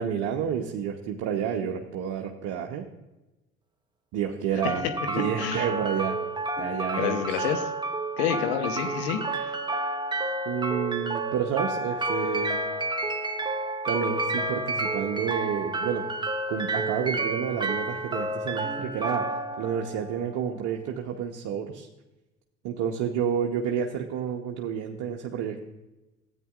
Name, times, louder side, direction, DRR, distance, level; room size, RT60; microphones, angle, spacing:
voice 1, 0.0-2.8 4.1-4.8 5.1-6.2 6.6-7.4 10.5-12.6 13.9-16.0 16.5-21.9 22.6-25.6, right 8 dB, 65° right, 1 dB, 1.0 m, -30 dB
sound 1, 4.6-20.6, right 2 dB, 15° right, 1.1 m, -30 dB
voice 2, 7.0-7.7 8.2-9.6, left 8 dB, 75° left, 7 dB, 1.0 m, -29 dB
13.5 x 9.0 x 2.5 m, 1.0 s
hypercardioid pair, 65°, 33 cm